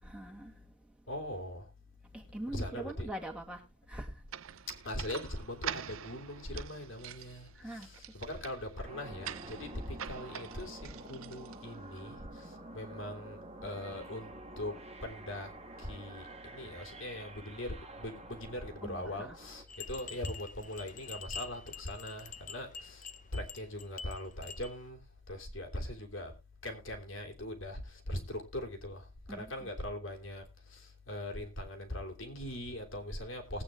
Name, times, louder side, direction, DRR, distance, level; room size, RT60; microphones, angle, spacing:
voice 1, 0.0-1.2 2.1-4.3 7.5-7.9 18.8-19.4 29.3-29.7, right 1 dB, 5° right, 2.1 m, -44 dB
voice 2, 1.1-1.7 2.5-3.1 4.7-14.7 15.0-15.5 15.8-26.3 26.6-33.6, left 1 dB, 75° left, 3.0 m, -41 dB
sound 1, 4.3-11.9, right 9 dB, 85° right, 0.6 m, -45 dB
sound 2, 8.8-19.6, right 2 dB, 30° right, 1.8 m, -49 dB
sound 3, 19.7-24.8, left 5 dB, 40° left, 0.7 m, -47 dB
20.0 x 8.7 x 2.5 m
head